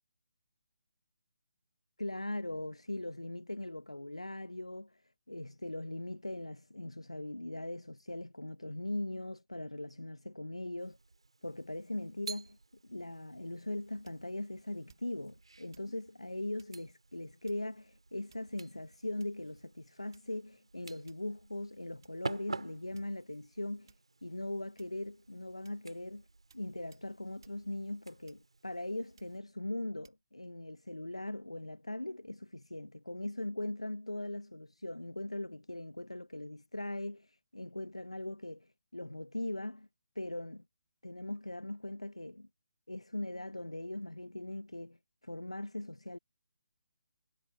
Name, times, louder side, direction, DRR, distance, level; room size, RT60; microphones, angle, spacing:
voice 1, 2.0-5.0 5.3-11.0 11.4-12.6 12.8-23.9 24.2-26.2 26.5-39.9 40.2-40.6 41.0-42.5 42.9-45.0 45.2-46.2, left 1 dB, 90° left, 0.7 m, -40 dB
sound 1, 10.8-29.4, right 3 dB, 70° right, 2.5 m, -50 dB
sound 2, 14.0-14.4 14.9-15.3 15.7-16.0 16.6-16.8 17.4-17.8 18.3-18.7 19.2-19.5 20.1-20.5 21.1-21.4 22.0-22.2 22.9-23.4 23.9-24.1 24.8-25.1 25.6-25.9 26.5-26.7 26.9-27.1 27.4-27.6 28.3-28.7 29.2-29.4 30.0-30.2, right 6 dB, 45° right, 2.6 m, -65 dB
figure-of-eight pair, 145°, 3 cm